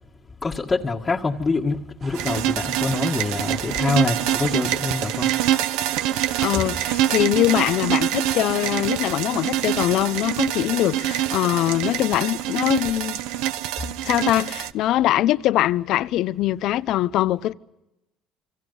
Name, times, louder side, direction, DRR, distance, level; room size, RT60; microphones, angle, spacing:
voice 1, 0.4-5.3 6.5-6.6, left 3 dB, 25° left, 1.7 m, -25 dB
sound 1, 2.0-9.2, right 6 dB, 40° right, 3.5 m, -43 dB
sound 2, 2.1-14.7, right 12 dB, 85° right, 1.0 m, -25 dB
voice 2, 6.4-13.2 14.0-17.5, left 14 dB, 65° left, 0.8 m, -22 dB
28.5 x 25.5 x 5.5 m
cardioid pair, 110°, 0 cm